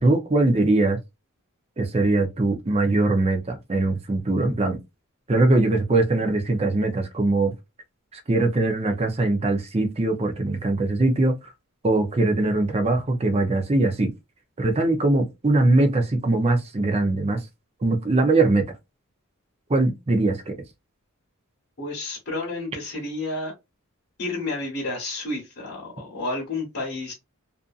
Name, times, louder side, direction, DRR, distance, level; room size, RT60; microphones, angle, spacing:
voice 1, 0.0-1.0 1.8-4.8 5.3-7.5 8.3-11.4 11.8-14.1 14.6-17.4 17.8-18.6 19.7-20.5, right 2 dB, 30° right, 0.5 m, -21 dB
voice 2, 21.8-23.5 24.2-27.1, left 2 dB, 55° left, 1.0 m, -30 dB
2.5 x 2.5 x 2.4 m
head